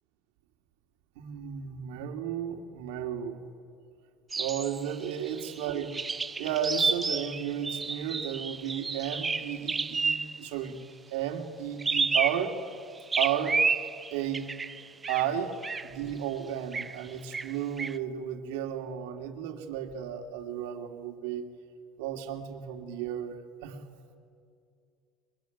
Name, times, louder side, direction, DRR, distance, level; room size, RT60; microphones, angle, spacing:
voice 1, 1.2-3.4 4.4-5.9 6.3-10.8 11.1-12.5 13.2-13.6 14.1-14.5 15.1-15.5 15.8-21.5 22.0-23.8, right 9 dB, 85° right, 5 dB, 2.8 m, -33 dB
sound 1, 4.3-10.5 11.8-12.7 13.1-15.3 15.6-15.9 16.7-17.0 17.3-18.0, right 4 dB, 15° right, 0.6 m, -31 dB
24.0 x 23.5 x 9.4 m, 2.3 s
cardioid pair, 160°, 0 cm